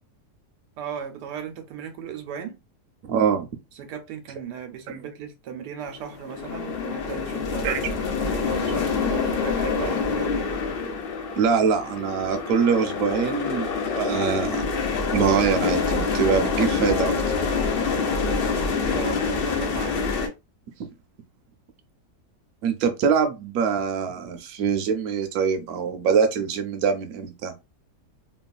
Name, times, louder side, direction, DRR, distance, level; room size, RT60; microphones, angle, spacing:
voice 1, 0.8-2.6 3.7-10.5 18.6-20.1, right 7 dB, 90° right, 1.2 m, -37 dB
voice 2, 3.1-3.5 4.9-5.0 7.6-7.8 9.8-9.9 11.4-14.7 15.1-17.2 20.8-20.9 22.6-27.5, right 6 dB, 70° right, 1.0 m, -24 dB
sound 1, 5.9-20.3, left 5 dB, 80° left, 0.5 m, -26 dB
3.0 x 2.3 x 2.3 m
omnidirectional pair, 1.7 m